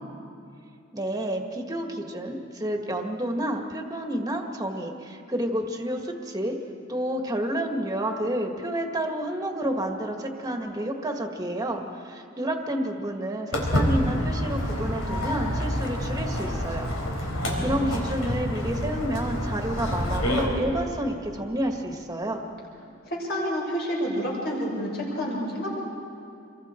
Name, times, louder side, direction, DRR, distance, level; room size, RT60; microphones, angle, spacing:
voice 1, 0.9-6.6 6.9-16.9 17.6-22.4, right 1 dB, 20° right, 3 dB, 1.7 m, -30 dB
Walk footsteps, 13.5-20.4, equal, 80° left, 4.6 m, -28 dB
voice 2, 17.3-18.0 23.1-25.7, equal, 50° left, -3 dB, 5.6 m, -29 dB
27.5 x 22.5 x 4.5 m, 2.6 s
head